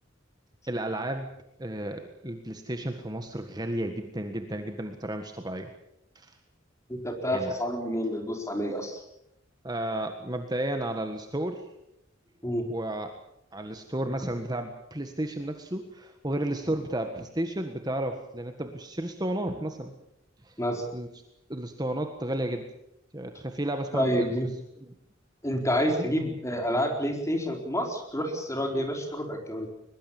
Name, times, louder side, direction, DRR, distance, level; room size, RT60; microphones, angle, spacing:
voice 1, 0.7-1.3 1.6-5.7 6.1-6.4 7.2-7.5 9.6-11.6 12.7-13.1 13.5-19.9 20.4-20.6 20.9-21.1 21.5-22.7 23.1-24.3, right 1 dB, 20° right, 6 dB, 1.6 m, -32 dB
voice 2, 6.9-9.0 12.4-12.7 20.6-20.8 23.9-24.5 25.4-29.7, equal, 15° left, 3 dB, 4.3 m, -28 dB
22.5 x 21.5 x 7.2 m, 0.80 s
head